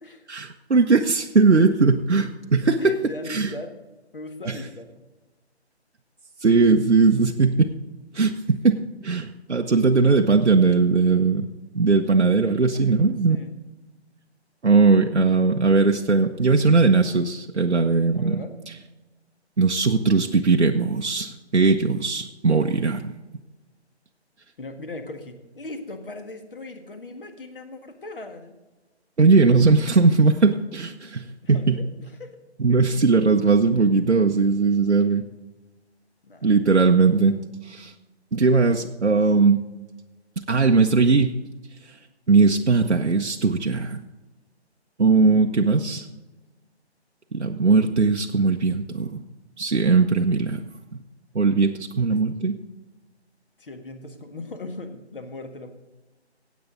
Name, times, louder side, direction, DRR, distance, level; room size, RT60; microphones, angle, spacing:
voice 1, 0.3-2.8 3.3-3.5 4.5-4.6 6.4-7.7 8.1-11.5 11.7-13.4 14.6-18.4 19.6-23.1 29.2-31.8 32.6-35.2 36.4-37.4 37.6-37.9 38.3-39.6 40.5-41.4 42.3-44.0 45.0-46.1 47.3-49.2 49.6-50.6 51.3-52.6, right 4 dB, 90° right, 3 dB, 0.8 m, -19 dB
voice 2, 2.8-3.7 4.1-5.0 12.6-13.5 18.1-18.5 24.6-28.5 31.4-32.3 36.2-36.7 52.1-52.2 53.6-55.7, left 2 dB, 50° left, 7 dB, 1.7 m, -39 dB
15.5 x 8.6 x 3.8 m, 1.1 s
figure-of-eight pair, 150°, 34 cm